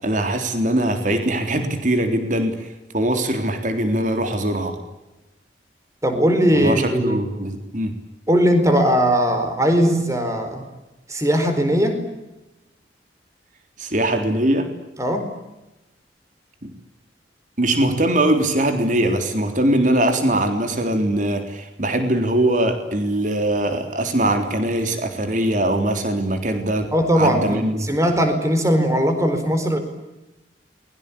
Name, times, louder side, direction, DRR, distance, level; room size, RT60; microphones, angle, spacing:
voice 1, 0.0-4.8 6.5-7.9 13.8-14.7 16.6-16.7 17.6-26.9 27.1-27.9, right 1 dB, 45° right, 6 dB, 3.6 m, -21 dB
voice 2, 6.0-7.2 8.3-10.6 11.1-12.0 15.0-15.3 26.9-29.8, equal, 15° right, 7 dB, 4.5 m, -19 dB
29.0 x 22.5 x 8.6 m, 1.0 s
head